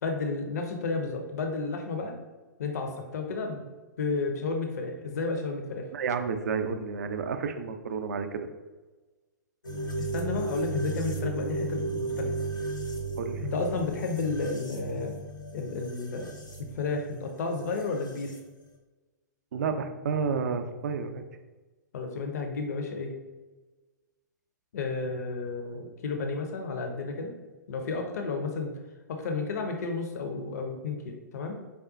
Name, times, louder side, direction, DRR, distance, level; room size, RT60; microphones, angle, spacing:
voice 1, 0.0-2.2 2.6-3.7 4.0-5.9 10.0-12.3 13.4-15.1 15.5-16.3 16.6-18.3 21.9-23.1 24.7-27.3 27.7-28.7 29.1-31.0 31.3-31.6, left 4 dB, 60° left, 4 dB, 0.5 m, -32 dB
voice 2, 5.9-8.5 13.2-13.5 19.5-21.2, right 5 dB, 60° right, 7 dB, 0.4 m, -31 dB
sound 1, 9.6-18.4, right 3 dB, 85° left, 0.7 m, -35 dB
4.7 x 2.2 x 2.4 m, 1.2 s
figure-of-eight pair, 115°, 10 cm